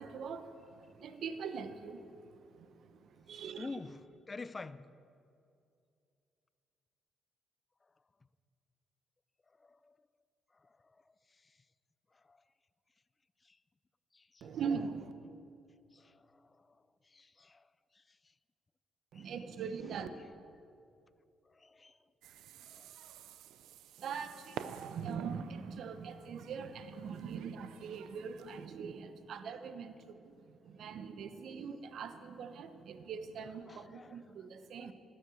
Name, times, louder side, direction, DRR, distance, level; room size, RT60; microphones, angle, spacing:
voice 1, 0.0-2.0 2.6-3.8 14.4-15.1 19.1-20.1 24.0-34.9, right 6 dB, 70° right, 0.9 m, -42 dB
voice 2, 3.3-4.8 9.6-10.0 10.6-10.7 12.3-12.4 13.4-13.6 14.1-14.5 15.9-16.8 17.1-17.6 18.0-18.1 19.1-19.3 21.5-22.0 22.7-22.9 31.4-31.7 33.7-34.2 34.8-34.9, left 3 dB, 25° left, 0.5 m, -49 dB
sound 1, 22.2-28.7, right 9 dB, 85° right, 0.5 m, -51 dB
13.0 x 9.9 x 7.7 m
cardioid pair, 90°, 0 cm